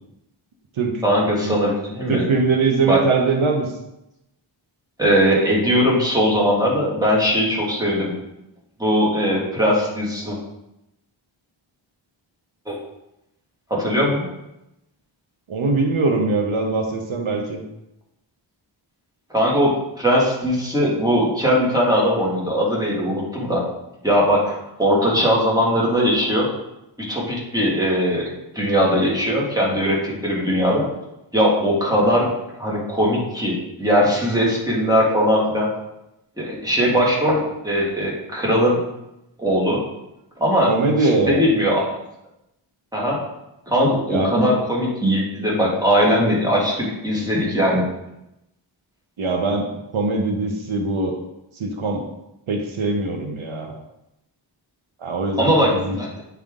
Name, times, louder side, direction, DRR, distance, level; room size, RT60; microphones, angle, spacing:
voice 1, 1.0-2.2 2.9-3.0 5.0-8.1 8.8-10.4 12.7-12.8 13.7-14.3 19.3-19.7 20.0-23.6 24.0-26.5 27.1-30.9 31.3-32.3 32.6-35.7 36.4-38.8 39.4-39.8 40.4-40.7 41.0-41.9 42.9-43.2 43.7-47.8 55.4-56.1, equal, 10° right, -5 dB, 1.8 m, -20 dB
voice 2, 2.1-3.7 15.5-17.6 40.7-41.4 44.1-44.3 49.2-49.6 49.9-51.2 51.5-52.0 52.5-53.8 55.0-56.0, right 3 dB, 80° right, 3 dB, 0.9 m, -22 dB
8.9 x 3.6 x 3.6 m, 0.88 s
wide cardioid pair, 130°, 48 cm